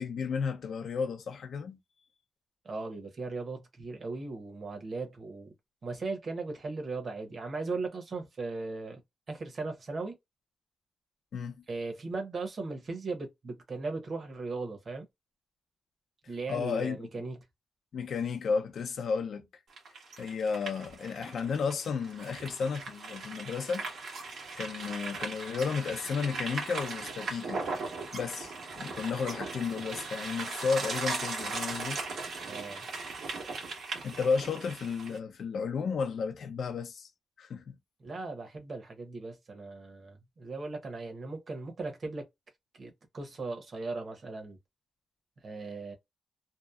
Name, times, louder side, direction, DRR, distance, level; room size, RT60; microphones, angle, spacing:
voice 1, 0.0-1.8 11.3-11.5 16.5-17.1 17.9-19.5 20.2-23.9 24.6-27.7 28.1-32.0 34.0-37.1 37.4-37.8, left 5 dB, 65° left, 0.5 m, -33 dB
voice 2, 2.6-5.5 5.8-9.0 9.3-10.2 11.7-15.1 16.3-17.4 32.5-32.9 38.0-42.3 42.7-44.6 45.4-45.9, right 3 dB, 40° right, 0.9 m, -38 dB
sound 1, 19.7-35.2, right 3 dB, 75° right, 1.2 m, -38 dB
2.8 x 2.0 x 2.3 m
wide cardioid pair, 155°, 0 cm